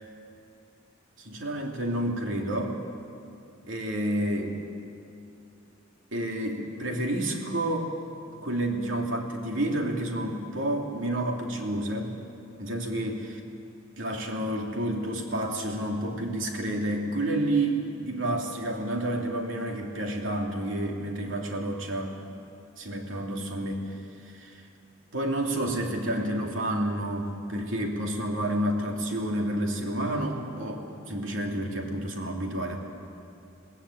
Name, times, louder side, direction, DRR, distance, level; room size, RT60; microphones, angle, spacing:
voice 1, 1.2-2.8 3.7-4.6 6.1-7.9 8.4-12.2 12.6-13.4 14.0-22.2 22.8-24.0 24.3-24.6 25.1-32.8, right 1 dB, 70° right, 1 dB, 2.9 m, -30 dB
22.5 x 17.5 x 8.7 m, 2.6 s
head